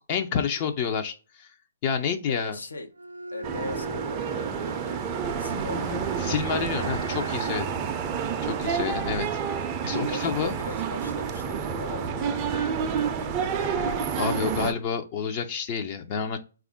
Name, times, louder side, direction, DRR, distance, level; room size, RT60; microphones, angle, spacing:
voice 1, 0.1-1.5 1.8-2.6 6.2-7.7 8.4-9.2 9.8-10.5 14.2-16.4, left 6 dB, 35° left, 6 dB, 0.5 m, -29 dB
voice 2, 2.3-2.9 3.3-5.0 5.4-6.1 7.8-8.0 10.1-15.0, left 3 dB, 80° left, 6 dB, 0.7 m, -40 dB
Bowed string instrument, 2.9-7.8, right 1 dB, 85° right, 0.3 m, -39 dB
sound 1, 3.4-14.7, right 7 dB, 25° right, 0.4 m, -29 dB
3.5 x 2.4 x 3.4 m, 0.34 s
figure-of-eight pair, 135°, 0 cm